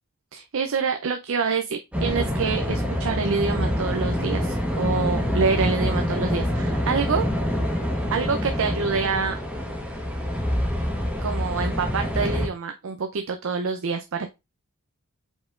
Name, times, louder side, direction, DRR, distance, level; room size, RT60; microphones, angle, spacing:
voice 1, 0.3-7.2 8.1-9.4 11.2-14.3, right 5 dB, 60° right, 6 dB, 0.5 m, -26 dB
sound 1, 1.9-12.5, equal, 5° right, 1.0 m, -26 dB
4.9 x 4.1 x 2.4 m, 0.23 s
head